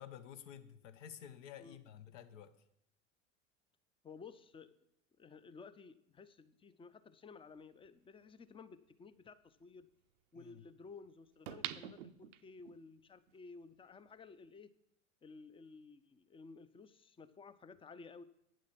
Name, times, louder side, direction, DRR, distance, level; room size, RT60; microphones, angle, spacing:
voice 1, 0.0-2.6 10.3-10.6, left 9 dB, 70° left, 10 dB, 1.0 m, -52 dB
voice 2, 4.0-4.7 5.2-9.9 10.3-14.7 15.2-18.2, left 4 dB, 15° left, 14 dB, 0.5 m, -55 dB
sound 1, 7.8-7.9 11.5-12.8 13.3-13.4, right 12 dB, 70° right, 0.6 m, -44 dB
9.0 x 7.5 x 5.8 m, 0.77 s
hypercardioid pair, 80°, 39 cm